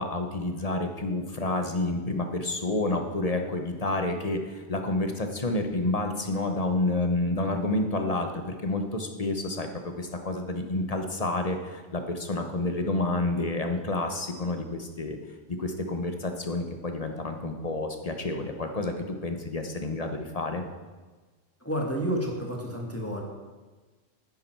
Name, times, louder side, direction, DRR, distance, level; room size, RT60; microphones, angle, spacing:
voice 1, 0.0-9.7 10.0-15.2 15.6-20.6, left 2 dB, 35° left, 5 dB, 0.9 m, -29 dB
voice 2, 21.6-23.2, equal, 10° left, 0 dB, 1.4 m, -30 dB
9.9 x 9.5 x 4.5 m, 1.3 s
omnidirectional pair, 1.3 m